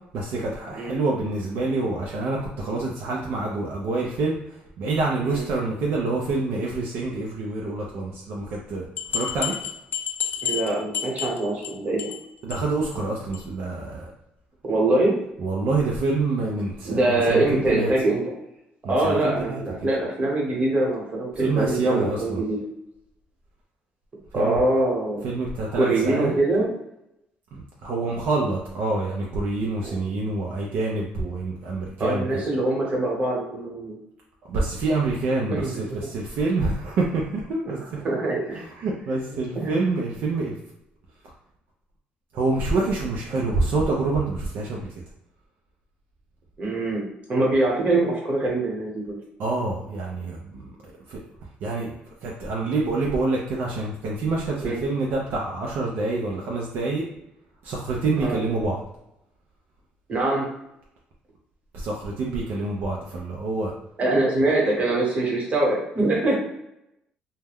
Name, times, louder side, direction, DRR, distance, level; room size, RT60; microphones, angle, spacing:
voice 1, 0.1-4.4 4.8-8.8 9.1-9.5 12.4-14.1 15.4-17.9 18.8-19.6 21.4-22.4 24.3-24.6 25.2-26.3 27.5-32.3 34.5-37.8 38.3-38.5 38.8-40.5 42.3-44.9 49.4-50.7 51.1-51.2 51.6-52.0 52.2-57.1 57.6-58.8 61.7-63.7, right 3 dB, 65° right, -2 dB, 0.5 m, -26 dB
sound 1, 8.5-8.6 9.0-11.7 12.0-12.2 12.5-12.6 12.9-13.0 13.3-13.4, left 9 dB, 60° left, 0.4 m, -30 dB
voice 2, 10.4-12.1 14.6-15.1 16.8-18.3 18.9-22.6 24.3-25.3 25.7-26.7 29.9-30.0 32.0-33.9 35.5-35.8 37.7-38.6 39.3-39.7 46.6-49.2 54.6-54.8 58.2-58.4 60.1-60.5 64.0-66.3, right 2 dB, 40° right, -2 dB, 1.1 m, -24 dB
2.2 x 2.1 x 3.4 m, 0.84 s
supercardioid pair, 80°, 4 cm